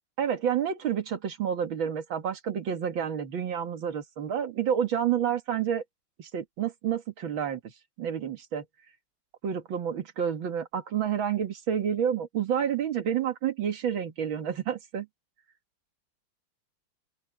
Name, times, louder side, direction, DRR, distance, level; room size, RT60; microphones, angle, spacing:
voice 1, 0.2-5.8 6.2-7.6 8.0-8.6 9.4-15.1, right 8 dB, 70° right, 2.5 m, -29 dB
open air
omnidirectional pair, 2.2 m